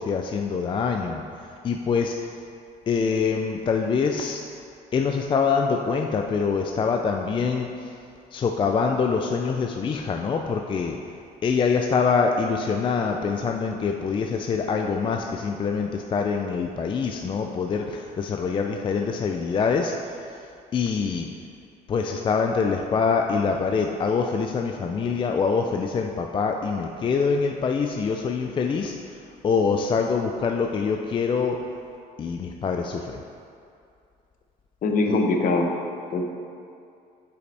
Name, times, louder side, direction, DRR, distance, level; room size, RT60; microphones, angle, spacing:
voice 1, 0.0-2.2 2.9-4.4 4.9-8.0 8.3-11.0 11.4-21.3 21.9-31.6 32.2-33.2 35.1-35.2, left 5 dB, 30° left, 3 dB, 0.4 m, -25 dB
voice 2, 34.8-35.7 36.1-36.2, left 3 dB, 55° left, 3 dB, 0.8 m, -22 dB
8.2 x 5.5 x 3.4 m, 2.5 s
cardioid pair, 110°, 17 cm